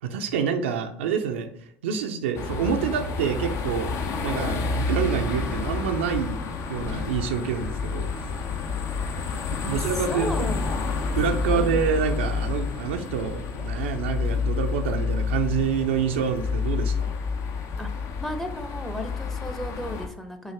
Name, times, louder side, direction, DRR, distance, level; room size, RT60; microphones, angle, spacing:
voice 1, 0.0-4.0 4.2-6.4 6.7-8.3 9.6-10.5 11.2-17.1, right 7 dB, 75° right, 5 dB, 0.5 m, -27 dB
sound 1, 2.3-20.1, left 4 dB, 50° left, 0.7 m, -29 dB
voice 2, 9.6-11.1 11.5-11.8 17.8-17.9 18.2-20.5, left 1 dB, 5° left, 6 dB, 0.7 m, -35 dB
5.5 x 2.5 x 3.4 m, 0.67 s
figure-of-eight pair, 65°, 6 cm